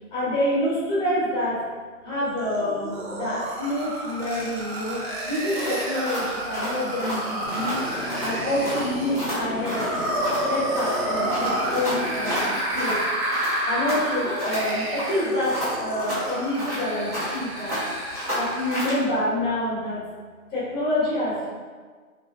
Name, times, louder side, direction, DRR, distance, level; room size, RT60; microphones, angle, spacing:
voice 1, 0.1-1.6 2.0-7.8 8.2-9.9 10.5-13.0 13.6-17.8 18.3-20.0 20.5-21.5, left 1 dB, 10° left, -9 dB, 1.1 m, -27 dB
sound 1, 2.4-19.0, right 1 dB, 45° right, 0.7 m, -30 dB
sound 2, 5.5-7.8 8.1-8.4 8.6-10.5 10.8-13.0 13.3-14.7 15.0-17.4 17.7-19.0, equal, 10° right, 0.5 m, -31 dB
sound 3, 7.4-12.5, left 2 dB, 45° left, 0.6 m, -35 dB
3.2 x 3.0 x 2.5 m, 1.5 s
hypercardioid pair, 150°, 44 cm